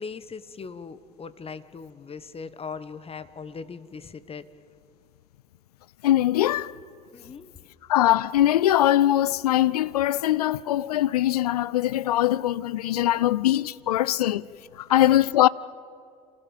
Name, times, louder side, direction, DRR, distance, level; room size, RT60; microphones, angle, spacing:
voice 1, 0.0-4.5 7.1-7.7 14.9-15.2, left 5 dB, 30° left, 1.4 m, -40 dB
voice 2, 6.0-6.7 7.9-14.5 14.8-15.5, left 13 dB, 85° left, 0.4 m, -22 dB
27.5 x 16.0 x 7.3 m
hypercardioid pair, 60°, 19 cm